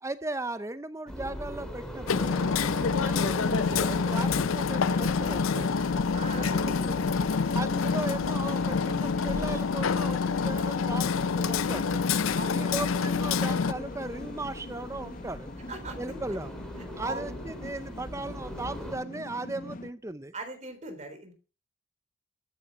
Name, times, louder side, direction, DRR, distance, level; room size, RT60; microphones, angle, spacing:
voice 1, 0.0-2.4 3.0-5.7 6.3-7.1 7.5-12.1 12.5-15.5 16.0-16.5 17.0-20.3, right 2 dB, 15° right, 0.6 m, -37 dB
sound 1, 1.1-19.0, equal, 5° left, 2.9 m, -41 dB
Hammer, 2.1-13.7, left 5 dB, 85° left, 0.5 m, -27 dB
sound 2, 2.1-19.9, left 2 dB, 40° left, 0.8 m, -42 dB
voice 2, 6.1-6.8 12.3-12.6 15.7-16.0 17.0-17.3 20.3-21.3, right 3 dB, 35° right, 3.7 m, -39 dB
13.5 x 9.0 x 6.1 m
head